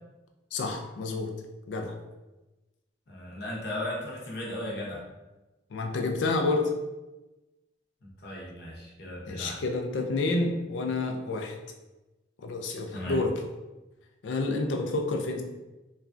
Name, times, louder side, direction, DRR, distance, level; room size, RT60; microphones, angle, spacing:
voice 1, 0.5-1.3 1.7-2.0 5.7-6.8 9.3-11.5 12.4-13.4 14.2-15.4, left 3 dB, 80° left, 3 dB, 0.4 m, -29 dB
voice 2, 3.1-5.0 8.0-9.6 12.9-13.2, left 1 dB, 60° left, -3 dB, 0.8 m, -36 dB
3.1 x 2.3 x 2.5 m, 1.1 s
head